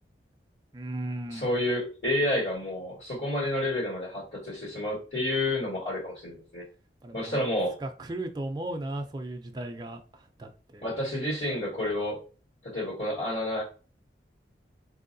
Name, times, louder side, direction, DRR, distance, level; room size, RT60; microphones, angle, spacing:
voice 1, 0.7-1.6 7.0-7.4 7.8-10.9, right 1 dB, 25° right, 4 dB, 0.4 m, -36 dB
voice 2, 1.3-6.6 7.1-7.7 10.8-12.2 12.6-13.6, left 1 dB, 70° left, -7 dB, 1.6 m, -30 dB
4.2 x 2.7 x 2.6 m, 0.37 s
head